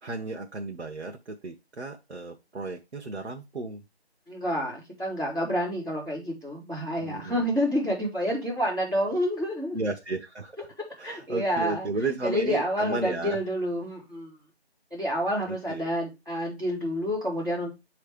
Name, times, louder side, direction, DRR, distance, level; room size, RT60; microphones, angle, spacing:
voice 1, 0.0-3.8 7.0-7.5 9.7-10.5 11.0-13.4 15.5-15.9, right 3 dB, 90° right, 1 dB, 1.1 m, -33 dB
voice 2, 4.3-9.8 11.0-11.9 12.2-14.4 14.9-17.7, equal, 10° right, -14 dB, 2.7 m, -29 dB
7.3 x 3.3 x 4.9 m, 0.24 s
figure-of-eight pair, 180°, 33 cm